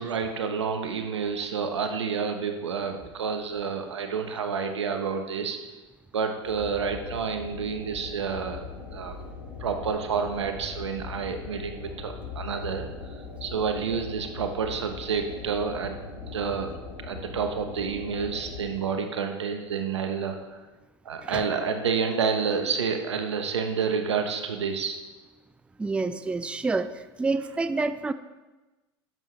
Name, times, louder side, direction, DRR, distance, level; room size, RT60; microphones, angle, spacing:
voice 1, 0.0-5.6 6.1-8.6 8.9-9.1 9.6-12.9 13.4-15.9 16.3-16.7 17.0-20.6 21.0-25.0 27.4-27.6, right 6 dB, 85° right, 6 dB, 0.9 m, -29 dB
sound 1, 6.4-18.7, left 4 dB, 90° left, 2.6 m, -40 dB
voice 2, 25.8-26.9 27.2-28.1, right 3 dB, 10° right, 13 dB, 0.4 m, -28 dB
10.5 x 7.5 x 3.2 m, 1.1 s
hypercardioid pair, 90°, 14 cm